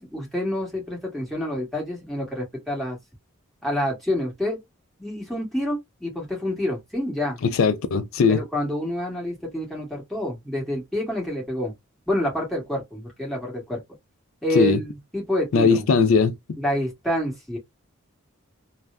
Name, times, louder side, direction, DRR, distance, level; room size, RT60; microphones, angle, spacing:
voice 1, 0.0-3.0 3.6-4.6 5.0-7.4 8.3-11.7 12.1-13.8 14.4-15.8 16.6-17.6, left 1 dB, ahead, 1.7 m, -28 dB
voice 2, 7.4-8.4 14.5-14.8 15.5-16.3, left 5 dB, 70° left, 0.4 m, -19 dB
3.4 x 2.1 x 2.5 m
head